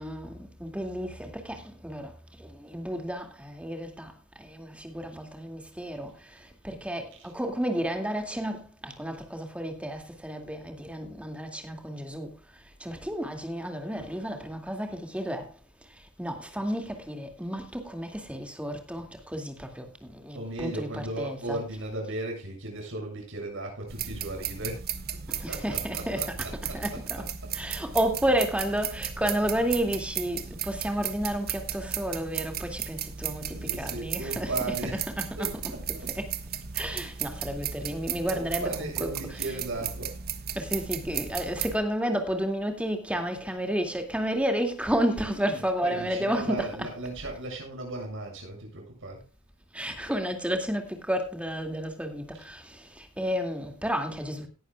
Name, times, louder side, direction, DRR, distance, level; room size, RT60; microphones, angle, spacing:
voice 1, 0.0-4.1 4.4-12.3 12.8-15.5 16.2-21.6 25.3-26.3 26.7-27.2 27.5-35.5 36.2-36.3 36.7-39.4 40.6-46.9 49.7-54.5, equal, 5° right, 2.2 m, -31 dB
voice 2, 20.3-24.9 25.3-27.8 28.6-28.7 33.4-35.1 35.4-36.1 38.3-40.2 43.5-43.6 45.5-49.2 52.3-52.4, right 2 dB, 65° right, 7.4 m, -37 dB
sound 1, 23.9-41.8, right 8 dB, 45° right, 1.3 m, -35 dB
18.0 x 11.0 x 2.3 m
head